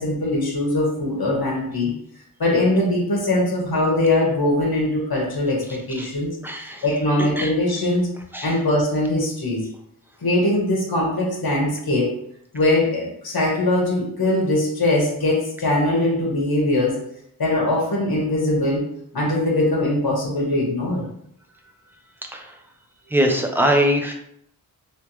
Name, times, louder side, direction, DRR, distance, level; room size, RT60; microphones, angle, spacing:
voice 1, 0.0-1.9 2.4-6.4 6.8-8.1 8.4-9.7 10.2-12.2 12.5-17.0 17.4-21.0, left 1 dB, 70° left, -1 dB, 1.3 m, -21 dB
voice 2, 6.4-6.9 7.4-7.5 8.3-8.6 22.2-22.6 23.1-24.1, equal, 5° right, 2 dB, 0.7 m, -22 dB
3.4 x 3.1 x 3.0 m, 0.71 s
wide cardioid pair, 65°, 38 cm